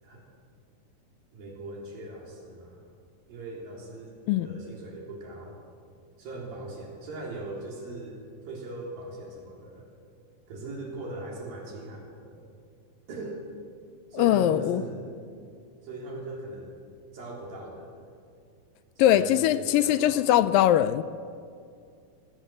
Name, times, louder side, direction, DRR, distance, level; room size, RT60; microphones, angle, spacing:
voice 1, 1.3-2.8 3.3-5.6 6.2-9.9 10.5-12.4 13.1-13.4 14.1-15.1 15.8-16.8 17.1-18.1 19.0-20.5, right 2 dB, 65° right, -1 dB, 5.1 m, -40 dB
voice 2, 14.2-14.8 19.0-21.0, left 12 dB, 80° left, 13 dB, 2.2 m, -21 dB
27.0 x 17.0 x 7.6 m, 2.3 s
omnidirectional pair, 4.4 m